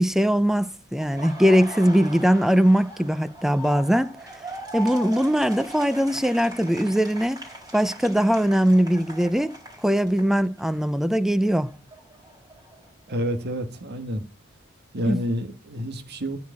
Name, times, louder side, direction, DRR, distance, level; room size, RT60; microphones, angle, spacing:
voice 1, 0.0-4.1 4.7-7.4 7.7-9.6 9.8-11.7 15.1-15.2, equal, ahead, 0.5 m, -21 dB
Laughter, 1.0-10.8 11.2-13.2, right 1 dB, 20° right, 3.9 m, -40 dB
voice 2, 13.1-14.2 14.9-16.4, equal, 50° right, 1.5 m, -28 dB
13.5 x 4.7 x 8.4 m
head